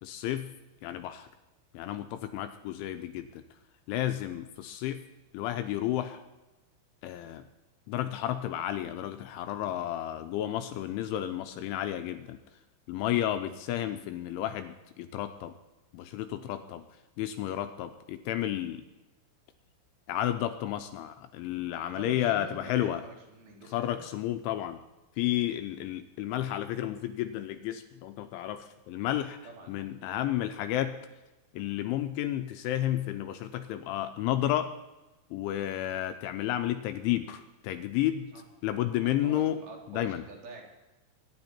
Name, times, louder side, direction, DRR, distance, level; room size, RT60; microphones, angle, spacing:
voice 1, 0.0-0.5 0.8-1.3 1.7-3.4 3.9-5.0 5.3-6.2 7.0-7.5 7.9-12.4 12.9-15.5 15.9-16.8 17.2-18.8 20.1-23.0 23.7-24.8 25.2-29.4 29.7-31.0 31.5-34.7 35.3-38.3 38.6-39.6 39.9-40.2, left 12 dB, 80° left, 9 dB, 2.9 m, -32 dB
voice 2, 21.9-24.0 29.4-29.8 38.3-38.4 39.2-40.6, right 3 dB, 50° right, -1 dB, 4.3 m, -47 dB
24.0 x 11.0 x 4.4 m, 1.0 s
omnidirectional pair, 5.9 m